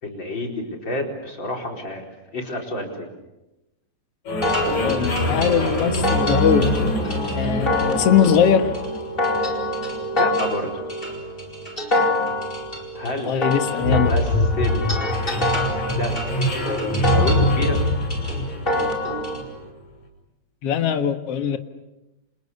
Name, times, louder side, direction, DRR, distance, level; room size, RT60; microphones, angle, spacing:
voice 1, 0.0-2.0 2.3-3.1 10.2-10.7 12.9-14.9 15.9-16.2 17.0-17.8, left 1 dB, 35° left, 1 dB, 5.0 m, -29 dB
sound 1, 4.3-19.7, left 1 dB, 75° left, 7.1 m, -25 dB
sound 2, 4.4-19.4, left 1 dB, 15° left, 4.7 m, -26 dB
voice 2, 4.8-6.7 7.3-8.7 13.3-14.1 20.6-21.6, left 8 dB, 55° left, 7 dB, 2.4 m, -20 dB
30.0 x 28.0 x 6.9 m, 1.0 s
omnidirectional pair, 3.4 m